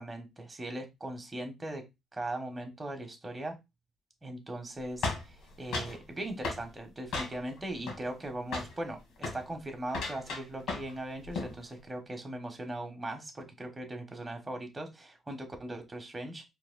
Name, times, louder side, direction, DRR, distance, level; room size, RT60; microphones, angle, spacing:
voice 1, 0.0-1.8 2.1-3.6 4.2-16.4, right 1 dB, 20° right, 4 dB, 1.4 m, -39 dB
sound 1, 5.0-6.0 6.4-6.7 7.1-7.6 7.9-8.3 8.5-8.8 9.2-9.4 9.9-11.0 11.2-11.6, left 3 dB, 80° left, 1.5 m, -35 dB
4.7 x 3.5 x 2.2 m, 0.22 s
cardioid pair, 90°, 0 cm